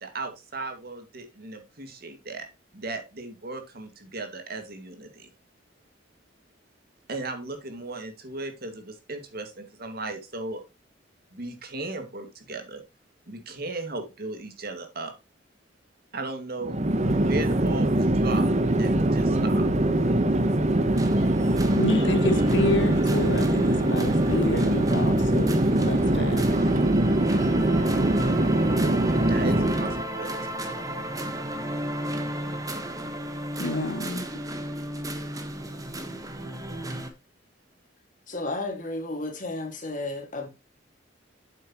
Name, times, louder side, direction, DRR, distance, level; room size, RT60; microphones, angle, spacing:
voice 1, 0.0-2.5 2.7-5.3 7.1-10.6 11.3-12.8 13.3-15.1 16.1-18.5 18.7-19.6 29.3-30.6, right 2 dB, 55° right, 2.1 m, -36 dB
Chatter / Fixed-wing aircraft airplane, 16.6-30.0, right 1 dB, 40° right, 1.0 m, -23 dB
sound 1, 20.9-37.1, right 1 dB, 20° right, 1.4 m, -33 dB
voice 2, 21.7-26.4 33.6-34.2, left 1 dB, 80° left, 1.4 m, -28 dB
voice 3, 38.3-40.5, left 2 dB, 45° left, 2.2 m, -32 dB
8.4 x 7.3 x 3.0 m
head